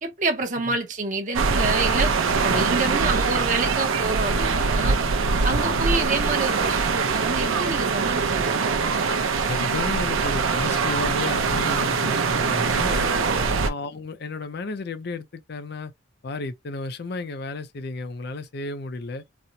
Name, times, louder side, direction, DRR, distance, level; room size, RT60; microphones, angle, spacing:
voice 1, 0.0-2.1 2.4-5.0 5.4-9.0 12.8-13.6, right 3 dB, 40° right, 0.7 m, -28 dB
sound 1, 1.3-13.7, right 4 dB, 85° right, 0.6 m, -23 dB
voice 2, 5.5-5.9 9.4-13.1 13.6-15.9 16.2-19.2, left 3 dB, 50° left, 0.5 m, -33 dB
4.2 x 2.1 x 2.7 m
head